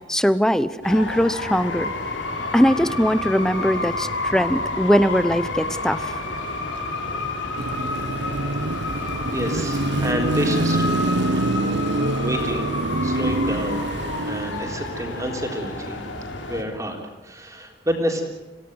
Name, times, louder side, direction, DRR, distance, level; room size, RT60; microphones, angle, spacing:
voice 1, 0.1-1.9 2.5-6.1, equal, 5° left, 14 dB, 0.8 m, -20 dB
sound 1, 0.8-16.6, left 2 dB, 80° left, 3.5 m, -30 dB
Car passing by / Traffic noise roadway noise / Engine, 7.6-14.9, right 2 dB, 65° right, 0.8 m, -25 dB
voice 2, 8.6-11.1 12.2-13.9 14.3-16.0 16.5-18.2, equal, 15° right, 2 dB, 3.6 m, -29 dB
27.5 x 17.0 x 8.0 m, 1.1 s
head